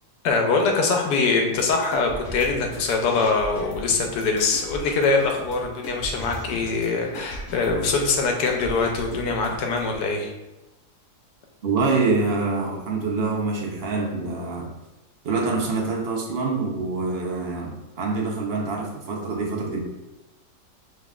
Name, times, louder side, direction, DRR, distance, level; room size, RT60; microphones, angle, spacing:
voice 1, 0.2-10.3, left 4 dB, 90° left, 2 dB, 1.3 m, -23 dB
sound 1, 1.6-10.0, equal, 55° left, 1.3 m, -38 dB
voice 2, 11.6-14.7 15.2-19.8, right 3 dB, 55° right, -1 dB, 0.7 m, -25 dB
5.1 x 3.2 x 2.4 m, 0.99 s
omnidirectional pair, 1.7 m